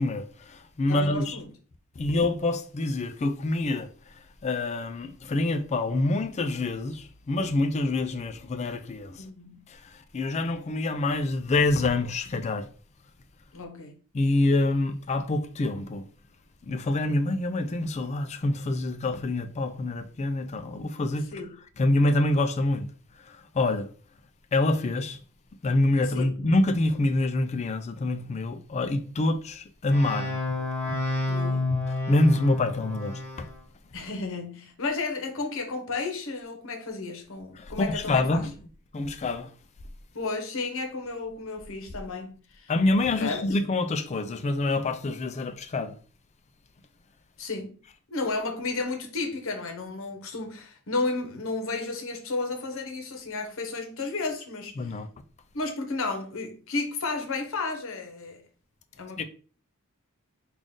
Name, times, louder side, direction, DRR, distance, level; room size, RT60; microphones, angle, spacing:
voice 1, 0.0-1.4 2.0-3.9 4.4-9.2 9.7-12.7 14.1-16.1 16.6-21.4 21.8-22.9 23.2-23.9 24.5-25.2 25.6-30.4 32.1-33.5 37.6-38.5 38.9-39.5 42.7-46.0 54.8-55.1 59.2-59.3, left 2 dB, 30° left, 0.3 m, -26 dB
voice 2, 0.9-1.5 9.2-9.7 13.5-14.0 21.3-21.6 26.0-26.3 31.3-31.8 33.9-38.4 40.1-42.7 43.2-43.6 47.4-47.8 48.1-54.9 55.5-58.4 59.0-59.2, left 3 dB, 60° left, 0.9 m, -33 dB
sound 1, 29.9-33.5, left 2 dB, 10° left, 1.2 m, -29 dB
3.7 x 2.4 x 3.7 m
head